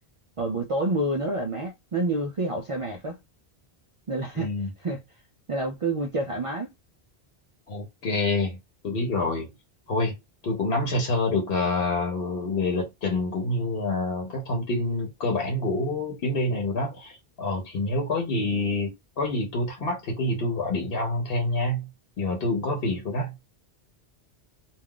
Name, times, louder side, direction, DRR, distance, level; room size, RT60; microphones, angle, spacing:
voice 1, 0.4-3.2 4.1-4.5 4.8-5.0 5.5-6.7, right 2 dB, 60° right, 0.3 m, -28 dB
voice 2, 4.4-4.7 7.7-8.6 8.8-9.5 9.9-10.1 10.4-18.9 19.2-21.9 22.2-23.3, left 2 dB, 65° left, 1.0 m, -27 dB
2.3 x 2.3 x 3.6 m
omnidirectional pair, 1.1 m